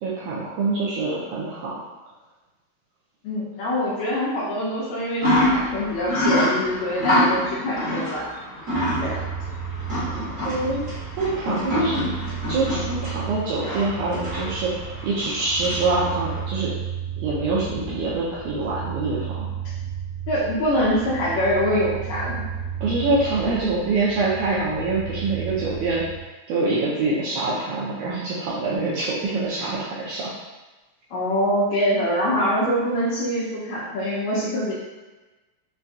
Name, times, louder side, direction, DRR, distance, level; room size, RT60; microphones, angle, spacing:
voice 1, 0.0-1.7 10.0-12.1 12.5-16.7 17.2-19.5 22.8-26.0 26.5-30.3, right 3 dB, 90° right, -7 dB, 1.8 m, -25 dB
voice 2, 3.2-8.3 9.0-9.2 20.3-22.5 31.1-34.7, equal, 80° left, -6 dB, 2.2 m, -24 dB
sound 1, 5.2-16.5, left 1 dB, 50° right, 0.9 m, -26 dB
sound 2, 8.7-26.2, right 7 dB, 70° right, 0.7 m, -33 dB
5.5 x 2.3 x 2.6 m, 1.2 s
omnidirectional pair, 4.1 m